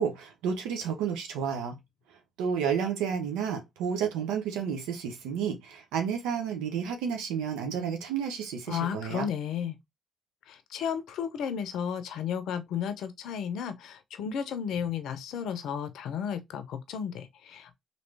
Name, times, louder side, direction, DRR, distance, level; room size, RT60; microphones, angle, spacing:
voice 1, 0.0-1.8 2.4-9.3, right 7 dB, 85° right, 0.6 m, -31 dB
voice 2, 8.7-9.8 10.5-17.7, left 8 dB, 75° left, 0.5 m, -33 dB
3.1 x 2.7 x 3.2 m
supercardioid pair, 50°, 0 cm